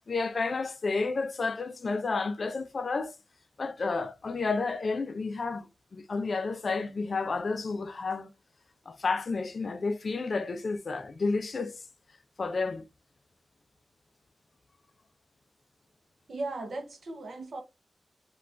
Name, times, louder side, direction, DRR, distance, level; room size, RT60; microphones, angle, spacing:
voice 1, 0.1-3.1 3.6-8.3 8.9-11.8 12.4-12.8, left 4 dB, 45° left, 0.3 m, -31 dB
voice 2, 16.3-17.6, right 2 dB, 60° right, 0.5 m, -37 dB
3.1 x 2.2 x 2.4 m
wide cardioid pair, 155°, 0 cm